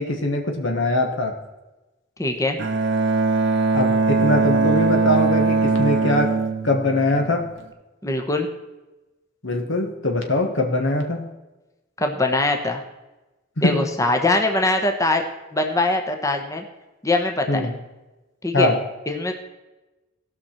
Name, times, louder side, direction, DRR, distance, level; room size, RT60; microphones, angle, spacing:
voice 1, 0.0-1.3 3.7-6.3 6.6-7.5 9.4-11.3 13.6-13.8 17.5-17.8 18.5-18.8, left 1 dB, 60° left, 3 dB, 1.3 m, -22 dB
voice 2, 2.2-2.6 8.0-8.5 12.0-12.8 13.6-15.2 15.5-16.6 17.0-17.7 18.4-18.7 19.1-19.3, left 2 dB, 15° left, 4 dB, 1.0 m, -22 dB
Bowed string instrument, 2.6-7.6, right 3 dB, 60° right, 0.8 m, -21 dB
18.0 x 6.1 x 4.4 m, 1.1 s
head